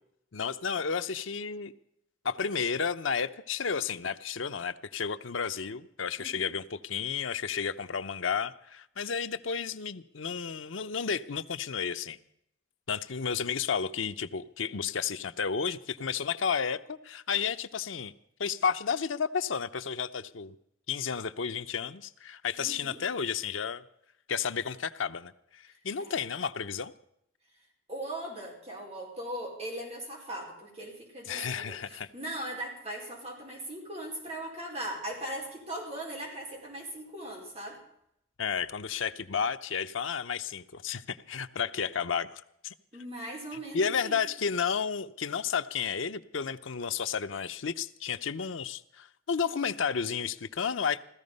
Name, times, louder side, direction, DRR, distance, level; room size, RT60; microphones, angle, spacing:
voice 1, 0.3-1.7 2.2-12.2 12.9-18.1 18.4-20.5 20.9-23.8 24.3-26.9 31.3-32.1 38.4-42.7 43.7-51.0, left 6 dB, 85° left, 10 dB, 0.8 m, -32 dB
voice 2, 6.2-6.5 22.6-23.0 26.0-26.2 27.9-37.8 42.9-44.2, right 1 dB, 35° right, -1 dB, 4.5 m, -39 dB
16.5 x 14.0 x 5.4 m, 0.75 s
head